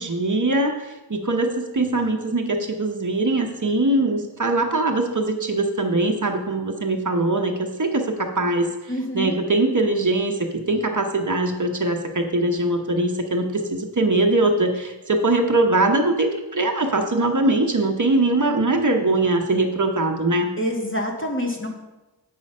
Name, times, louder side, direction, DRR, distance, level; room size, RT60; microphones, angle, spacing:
voice 1, 0.0-8.7 9.1-20.5, right 2 dB, 45° right, 3 dB, 1.0 m, -22 dB
voice 2, 8.9-9.4 20.6-21.7, equal, 30° left, 0 dB, 1.9 m, -26 dB
8.3 x 5.5 x 5.5 m, 1.1 s
wide cardioid pair, 40°, 41 cm